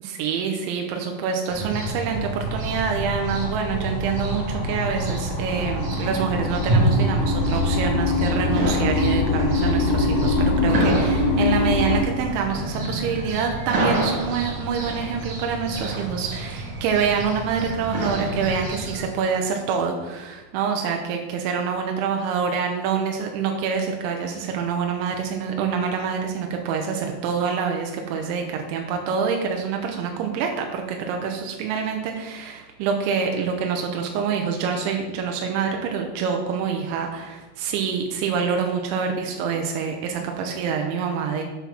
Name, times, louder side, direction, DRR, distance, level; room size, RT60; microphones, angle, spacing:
voice 1, 0.0-41.4, right 6 dB, 85° right, 3 dB, 3.1 m, -26 dB
sound 1, 1.5-19.1, right 2 dB, 60° right, 2.1 m, -28 dB
sound 2, 2.2-12.0, left 3 dB, 70° left, 2.4 m, -24 dB
7.3 x 5.8 x 5.7 m, 1.2 s
omnidirectional pair, 5.3 m